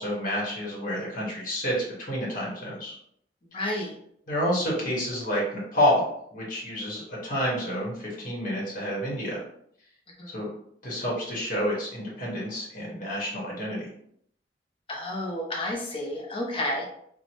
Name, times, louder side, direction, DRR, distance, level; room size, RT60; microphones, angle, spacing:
voice 1, 0.0-1.7 2.1-2.9 3.5-3.6 4.3-9.4 10.3-10.5 10.8-13.9, equal, 50° left, -4 dB, 1.1 m, -29 dB
voice 2, 3.5-3.9 10.2-10.3 14.9-16.9, left 1 dB, 30° left, -2 dB, 0.7 m, -31 dB
2.8 x 2.1 x 2.9 m, 0.68 s
head